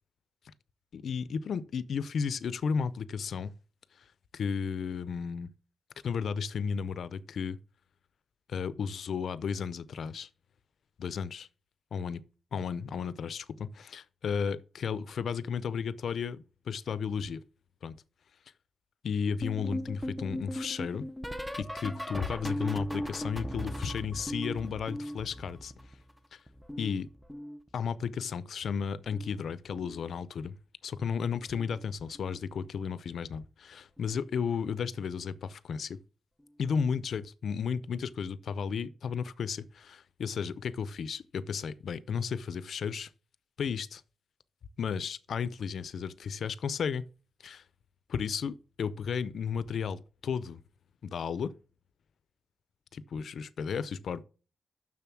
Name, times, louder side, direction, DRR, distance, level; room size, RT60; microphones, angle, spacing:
voice 1, 0.9-3.5 4.3-5.5 6.0-7.6 8.5-10.3 11.0-11.5 11.9-12.2 12.5-17.4 17.8-18.0 19.0-21.1 21.6-25.7 26.3-26.4 26.8-27.1 27.7-30.6 30.8-36.0 36.6-43.1 43.6-44.0 44.8-47.1 47.4-47.6 48.1-50.6 51.0-51.5 52.9-54.2, left 6 dB, 70° left, 0.5 m, -34 dB
sound 1, 19.4-26.2 26.5-28.0 29.0-29.4 29.6-30.0 31.5-31.8 32.1-32.4 34.0-34.1, equal, ahead, 0.6 m, -38 dB
7.0 x 6.3 x 6.1 m
wide cardioid pair, 170°, 0 cm